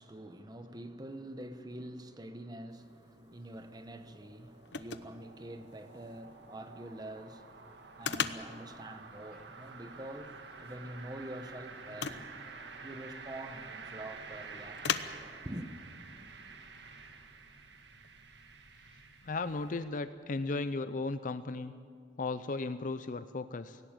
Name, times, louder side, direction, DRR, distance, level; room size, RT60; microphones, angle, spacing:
voice 1, 0.0-12.3 12.8-15.0 15.4-15.7, right 1 dB, 25° right, 1.0 m, -46 dB
sound 1, 2.6-19.9, right 4 dB, 80° right, 1.6 m, -50 dB
sound 2, 2.7-19.8, left 7 dB, 80° left, 0.9 m, -44 dB
voice 2, 19.2-21.7 22.2-23.8, left 3 dB, 50° left, 0.5 m, -35 dB
18.0 x 16.5 x 9.0 m
head